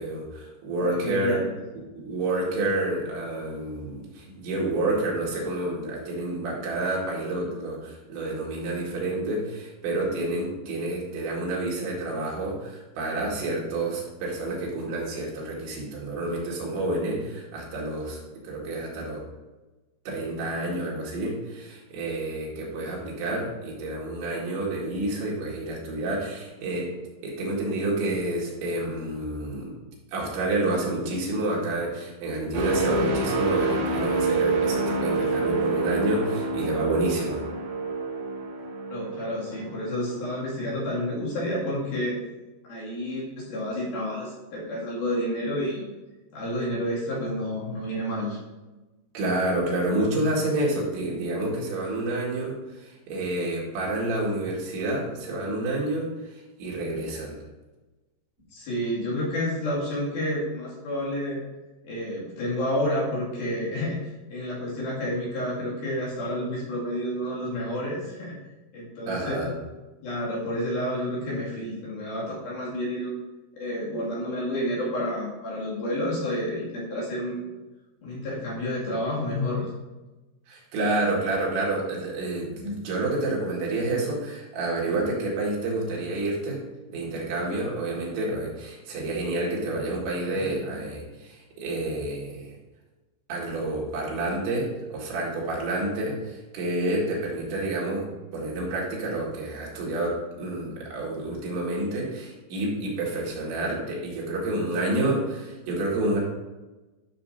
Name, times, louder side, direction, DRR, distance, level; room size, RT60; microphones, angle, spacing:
voice 1, 0.0-1.5 1.9-19.2 20.1-26.9 27.2-29.7 30.1-37.4 49.1-56.3 56.6-57.4 69.1-69.5 80.5-86.6 86.9-92.5 93.3-106.2, right 2 dB, 90° right, -4 dB, 4.3 m, -29 dB
voice 2, 0.8-1.5 38.9-42.2 42.6-45.9 46.3-48.4 58.5-61.4 61.8-68.4 68.7-69.5 70.0-73.1 73.6-77.5 78.0-79.7, left 1 dB, 60° left, -6 dB, 3.9 m, -30 dB
sound 1, 32.5-40.4 40.8-41.1, right 3 dB, 55° right, 4.8 m, -27 dB
12.0 x 6.3 x 2.7 m, 1.1 s
omnidirectional pair, 5.1 m